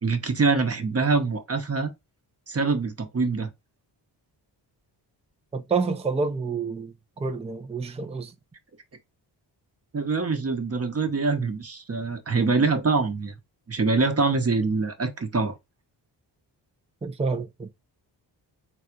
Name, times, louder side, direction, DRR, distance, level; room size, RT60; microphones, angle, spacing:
voice 1, 0.0-1.9 2.5-3.5 9.9-13.3 13.7-15.5, right 4 dB, 35° right, 1.0 m, -24 dB
voice 2, 5.5-8.3 17.0-17.7, right 4 dB, 15° right, 0.6 m, -28 dB
4.0 x 2.4 x 4.5 m
cardioid pair, 95°, 43 cm